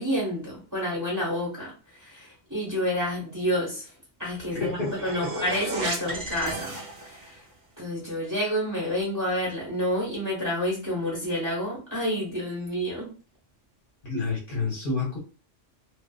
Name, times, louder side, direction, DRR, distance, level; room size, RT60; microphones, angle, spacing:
voice 1, 0.0-7.5 7.8-13.1, equal, 15° right, -5 dB, 1.1 m, -29 dB
sound 1, 4.4-7.4, right 1 dB, 50° right, 0.8 m, -34 dB
voice 2, 4.5-4.9 14.0-15.2, left 3 dB, 50° left, -3 dB, 1.0 m, -29 dB
2.6 x 2.4 x 2.3 m, 0.34 s
omnidirectional pair, 1.3 m